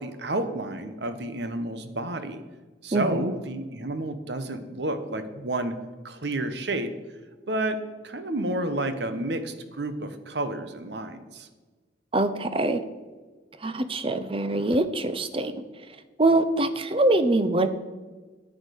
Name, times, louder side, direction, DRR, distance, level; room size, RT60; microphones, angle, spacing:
voice 1, 0.0-2.4 2.8-5.8 6.0-6.9 7.5-7.8 8.0-11.5, right 1 dB, 70° right, 10 dB, 1.1 m, -30 dB
voice 2, 2.9-3.3 12.1-12.8 13.6-15.5 16.2-17.7, right 2 dB, 30° right, 11 dB, 0.7 m, -23 dB
9.6 x 8.9 x 6.5 m, 1.3 s
head